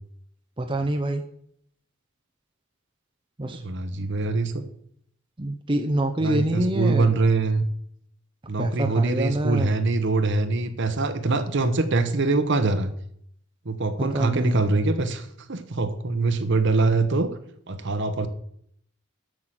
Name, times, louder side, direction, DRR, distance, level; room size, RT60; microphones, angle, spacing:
voice 1, 0.6-1.2 3.4-3.6 4.0-4.1 5.4-7.1 8.6-9.7 14.0-14.6, right 1 dB, 25° right, 4 dB, 0.7 m, -26 dB
voice 2, 3.5-4.6 6.2-7.6 8.5-12.9 13.6-17.3 17.7-18.3, right 3 dB, 55° right, 10 dB, 1.0 m, -24 dB
7.9 x 6.4 x 7.6 m, 0.69 s
head